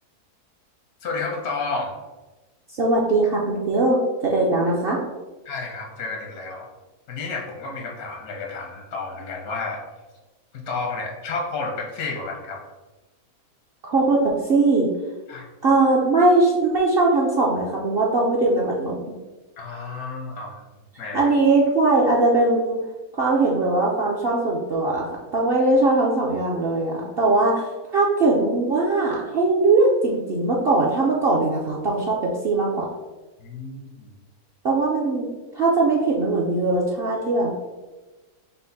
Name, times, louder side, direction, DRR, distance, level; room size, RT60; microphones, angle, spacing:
voice 1, 1.0-1.9 5.4-6.7 7.1-9.8 10.5-12.6 15.3-15.4 19.6-20.5 21.0-21.3 33.4-34.1, left 3 dB, 85° left, 0 dB, 1.3 m, -31 dB
voice 2, 2.7-5.0 13.8-14.9 15.6-19.0 21.1-22.8 23.1-32.9 34.6-35.3 35.5-37.5, right 2 dB, 60° right, -3 dB, 0.6 m, -20 dB
5.7 x 2.1 x 3.9 m, 1.2 s
omnidirectional pair, 1.5 m